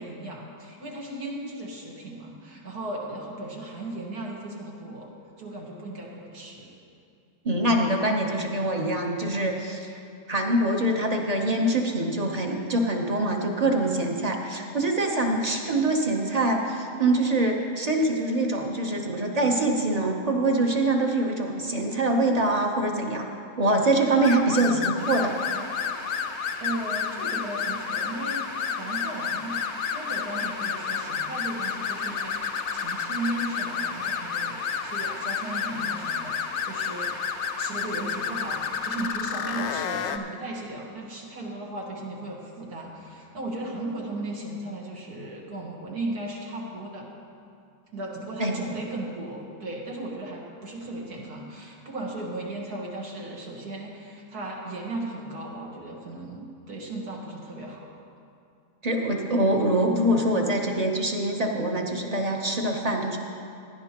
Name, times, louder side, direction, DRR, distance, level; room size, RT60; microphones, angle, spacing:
voice 1, 0.0-5.1 5.4-6.7 26.6-28.4 28.8-29.6 29.9-47.1 47.9-57.9, right 2 dB, 85° right, -2 dB, 2.2 m, -36 dB
voice 2, 7.4-10.0 10.3-23.3 23.6-25.3 48.4-48.6 58.8-63.2, right 1 dB, 35° right, 2 dB, 0.8 m, -24 dB
sound 1, 24.2-40.2, left 7 dB, 70° left, 0.7 m, -31 dB
sound 2, 25.0-39.1, right 1 dB, 50° right, 1.9 m, -42 dB
17.0 x 11.0 x 3.0 m, 2.5 s
omnidirectional pair, 1.6 m